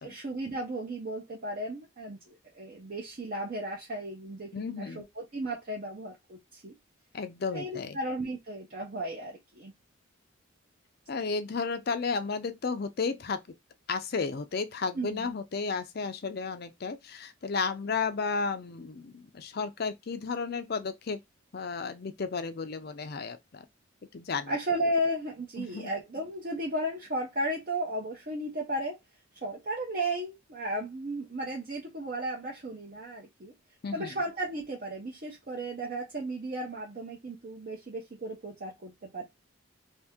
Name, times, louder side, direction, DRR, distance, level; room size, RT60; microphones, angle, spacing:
voice 1, 0.0-2.2 2.5-6.7 7.5-9.7 14.9-15.3 24.5-29.0 29.4-33.5 33.9-39.2, right 1 dB, 45° right, 0.7 m, -34 dB
voice 2, 4.5-5.1 7.1-8.0 11.1-13.4 13.9-21.2 21.5-23.6 24.1-24.5 25.6-25.9 33.8-34.2, left 4 dB, 50° left, 0.5 m, -33 dB
2.8 x 2.7 x 3.5 m
head